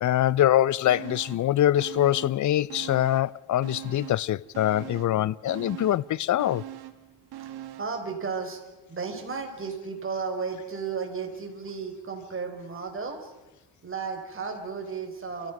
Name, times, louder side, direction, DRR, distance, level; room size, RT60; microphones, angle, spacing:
voice 1, 0.0-6.6, left 12 dB, 45° left, 0.6 m, -24 dB
sound 1, 0.8-1.5 1.8-3.3 3.6-8.0 8.3-8.4, right 12 dB, 65° right, 1.8 m, -42 dB
voice 2, 7.4-8.6 8.9-13.3 13.8-15.5, right 5 dB, 30° right, 4.8 m, -34 dB
29.5 x 14.5 x 6.1 m
cardioid pair, 95°, 42 cm